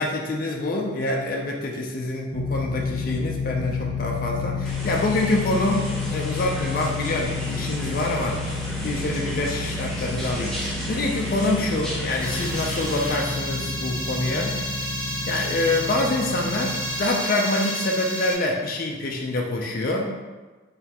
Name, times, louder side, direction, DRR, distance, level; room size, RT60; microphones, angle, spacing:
voice 1, 0.0-14.6 15.3-20.1, left 2 dB, 45° left, 0 dB, 0.4 m, -26 dB
sound 1, 2.3-17.0, left 4 dB, 60° right, 0.8 m, -31 dB
sound 2, 4.7-13.1, equal, 5° left, 0.6 m, -35 dB
sound 3, 12.2-18.3, equal, 45° right, 1.4 m, -31 dB
3.9 x 3.1 x 2.9 m, 1.3 s
head